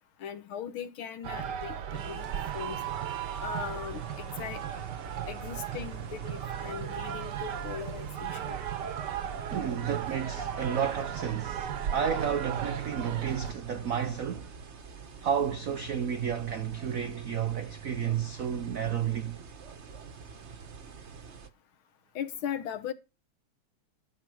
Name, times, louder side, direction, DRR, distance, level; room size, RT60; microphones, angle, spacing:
voice 1, 0.2-2.8 3.4-4.6 5.3-8.6 22.2-22.9, left 8 dB, 70° left, 1.9 m, -39 dB
sound 1, 1.2-13.5, right 9 dB, 60° right, 1.3 m, -36 dB
sound 2, 2.0-21.5, right 6 dB, 45° right, 1.0 m, -46 dB
voice 2, 9.5-14.5 15.2-19.4, right 8 dB, 80° right, 0.7 m, -31 dB
12.5 x 6.6 x 6.3 m
omnidirectional pair, 2.4 m